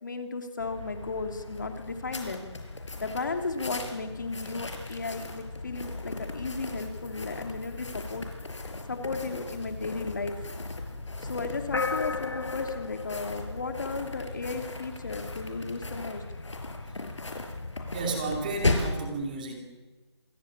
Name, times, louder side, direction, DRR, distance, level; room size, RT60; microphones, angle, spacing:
voice 1, 0.0-2.5 3.0-8.3 8.9-10.4 11.3-16.2, left 3 dB, 40° left, 6 dB, 2.8 m, -35 dB
sound 1, 0.6-19.0, left 2 dB, 85° left, 5.4 m, -37 dB
sound 2, 11.7-14.4, left 4 dB, 60° left, 1.4 m, -33 dB
voice 2, 17.9-19.6, right 3 dB, 20° right, 3 dB, 2.7 m, -32 dB
27.0 x 16.0 x 9.8 m, 1.3 s
figure-of-eight pair, 175°, 15 cm